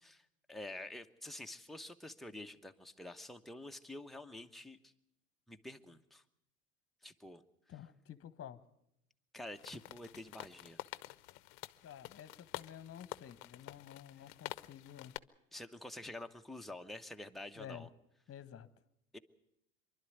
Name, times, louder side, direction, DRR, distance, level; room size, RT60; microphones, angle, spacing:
voice 1, 0.0-4.9 5.5-6.2 7.0-7.4 9.3-10.8 14.2-14.3 15.5-17.9 19.1-19.2, left 1 dB, ahead, 4 dB, 1.1 m, -48 dB
voice 2, 7.7-8.6 11.8-15.1 17.6-17.9 18.3-18.7, left 9 dB, 35° left, 14 dB, 1.4 m, -51 dB
sound 1, 9.5-15.2, left 20 dB, 60° left, 0.8 m, -49 dB
24.5 x 12.0 x 9.6 m, 0.82 s
hypercardioid pair, 80°, 41 cm